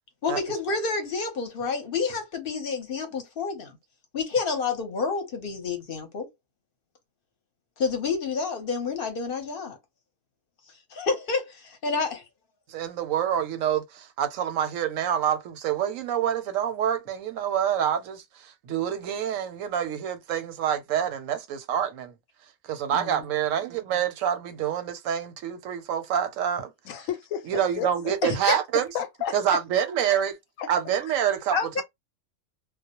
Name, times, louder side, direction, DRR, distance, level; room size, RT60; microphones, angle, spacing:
voice 1, 0.2-3.8 4.1-6.3 7.8-9.8 10.9-12.2 28.2-28.6 31.5-31.8, left 4 dB, 50° left, 0.8 m, -29 dB
voice 2, 12.7-22.1 22.6-26.7 27.5-28.9 29.3-30.4 30.7-31.8, right 9 dB, 85° right, 1.0 m, -27 dB
voice 3, 22.9-23.3 26.8-27.9 28.9-29.3 30.6-30.7, left 9 dB, 85° left, 1.0 m, -32 dB
2.3 x 2.0 x 2.8 m
omnidirectional pair, 1.3 m